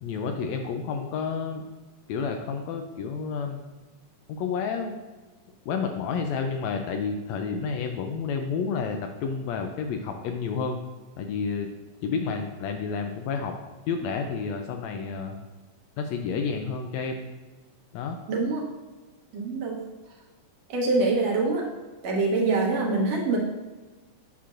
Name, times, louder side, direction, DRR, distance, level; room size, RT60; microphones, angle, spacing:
voice 1, 0.0-1.6 2.1-3.6 4.3-5.0 5.7-10.8 11.2-11.7 12.0-13.6 13.9-15.4 16.0-17.2 17.9-18.2, left 5 dB, 80° left, 4 dB, 1.7 m, -30 dB
voice 2, 18.3-18.6 19.3-19.9 20.7-21.7 22.0-23.4, right 3 dB, 65° right, -1 dB, 2.1 m, -24 dB
8.3 x 5.9 x 2.5 m, 1.2 s
omnidirectional pair, 3.4 m